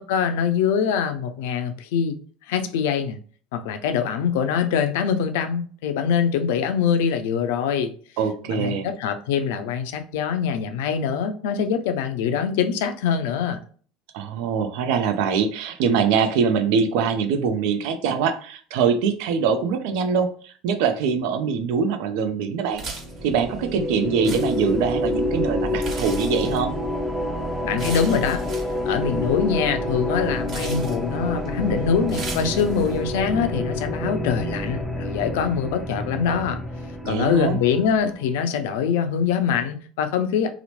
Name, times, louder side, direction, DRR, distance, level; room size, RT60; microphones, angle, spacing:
voice 1, 0.1-2.2 2.5-3.2 3.5-7.9 8.5-13.6 27.6-28.4 28.8-36.6 37.1-40.5, left 7 dB, 70° left, 0.4 m, -24 dB
voice 2, 8.2-8.9 14.1-22.8 23.2-26.7 37.0-37.6, right 6 dB, 65° right, 0.4 m, -23 dB
sound 1, 22.7-33.0, right 4 dB, 45° right, 1.2 m, -40 dB
sound 2, 22.9-38.3, left 1 dB, ahead, 0.5 m, -28 dB
2.9 x 2.0 x 2.9 m
hypercardioid pair, 75°, 0 cm